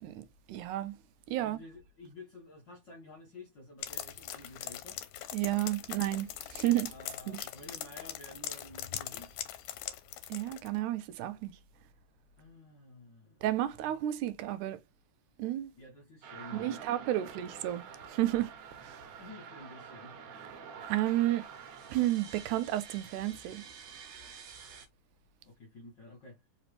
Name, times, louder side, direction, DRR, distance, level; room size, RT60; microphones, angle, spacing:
voice 1, 0.0-1.0 1.3-1.6 5.3-6.9 7.3-7.5 10.3-11.6 13.4-14.8 15.4-15.7 16.5-19.1 20.8-21.5 21.9-23.6, right 14 dB, 85° right, 1.9 m, -32 dB
voice 2, 1.4-5.0 6.9-9.4 12.4-13.5 15.8-17.0 19.2-20.2 25.4-26.4, left 2 dB, 60° left, 1.2 m, -51 dB
sound 1, 3.8-10.7, left 12 dB, 85° left, 2.1 m, -41 dB
sound 2, 16.2-24.9, right 6 dB, 65° right, 2.3 m, -48 dB
4.8 x 3.0 x 3.2 m
omnidirectional pair, 3.5 m